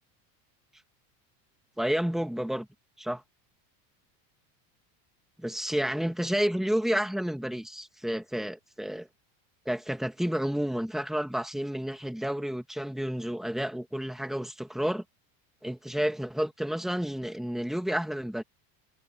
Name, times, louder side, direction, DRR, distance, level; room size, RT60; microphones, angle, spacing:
voice 1, 1.8-2.7 3.0-3.2 5.4-9.1 9.7-15.0 15.6-18.4, equal, ahead, 1.9 m, -30 dB
supercardioid pair, 135°, 44 cm